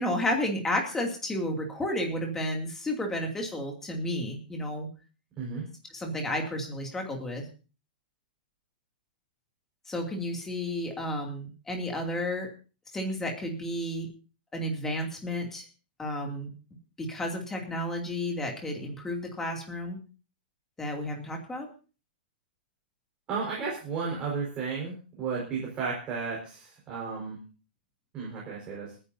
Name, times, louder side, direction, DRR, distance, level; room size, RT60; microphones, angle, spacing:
voice 1, 0.0-4.9 5.9-7.4 9.9-12.5 12.9-14.1 14.5-15.7 16.0-16.5 17.0-20.0 20.8-21.7, left 1 dB, 10° left, 2 dB, 2.5 m, -32 dB
voice 2, 23.3-27.4 28.1-28.9, right 5 dB, 20° right, -4 dB, 4.8 m, -33 dB
30.0 x 10.0 x 2.7 m, 0.36 s
hypercardioid pair, 165°, 5 cm